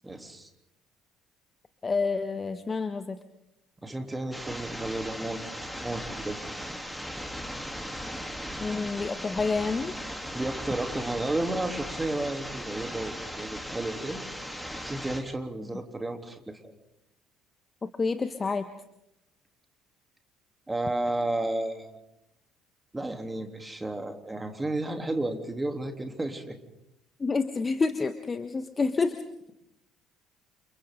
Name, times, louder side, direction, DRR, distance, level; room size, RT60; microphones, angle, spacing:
voice 1, 0.0-0.5 3.8-5.4 5.8-6.4 10.3-14.2 14.8-16.6 20.7-22.0 22.9-26.6, right 2 dB, 15° right, 5 dB, 3.3 m, -32 dB
voice 2, 1.8-3.2 8.6-9.9 17.8-18.7 27.2-29.2, left 4 dB, 25° left, 10 dB, 1.4 m, -28 dB
sound 1, 4.3-15.2, equal, ahead, 3.4 m, -38 dB
30.0 x 29.0 x 3.9 m, 0.84 s
figure-of-eight pair, 55°, 0 cm